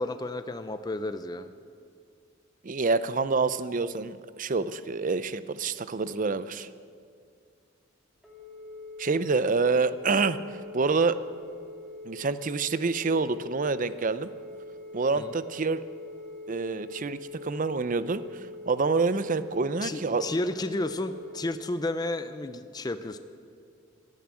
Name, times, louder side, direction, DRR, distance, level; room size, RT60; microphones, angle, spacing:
voice 1, 0.0-1.5 15.2-15.3 19.8-23.2, left 2 dB, 20° left, 10 dB, 0.5 m, -32 dB
voice 2, 2.6-6.7 9.0-11.2 12.0-14.3 14.9-15.8 16.5-20.2, right 4 dB, 40° right, 14 dB, 0.5 m, -27 dB
Telephone, 8.2-21.4, left 2 dB, ahead, 2.9 m, -44 dB
16.5 x 10.5 x 7.7 m, 2.2 s
head